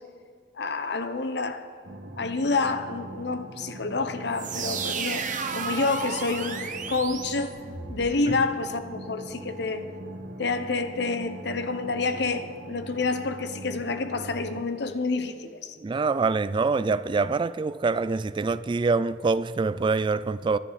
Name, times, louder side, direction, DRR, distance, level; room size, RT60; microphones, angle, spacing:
voice 1, 0.6-5.3 5.5-7.5 7.9-9.8 10.4-15.8, left 3 dB, 65° left, 0.9 m, -28 dB
sound 1, 1.8-14.6, right 1 dB, 60° right, 1.5 m, -42 dB
sound 2, 4.3-8.1, right 6 dB, 45° right, 1.1 m, -33 dB
voice 2, 15.8-20.6, right 4 dB, 25° right, 0.3 m, -25 dB
24.0 x 10.0 x 4.1 m
head